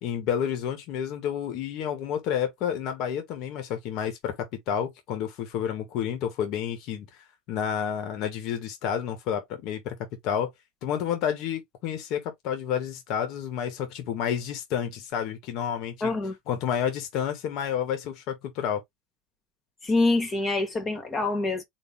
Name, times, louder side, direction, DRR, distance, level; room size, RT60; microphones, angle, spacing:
voice 1, 0.0-7.1 7.5-10.0 10.2-10.5 10.8-16.2 16.5-18.8, left 8 dB, 60° left, 1.5 m, -30 dB
voice 2, 16.0-16.3 19.8-21.6, left 2 dB, 25° left, 1.6 m, -25 dB
4.4 x 2.7 x 3.6 m
supercardioid pair, 130°, 0 cm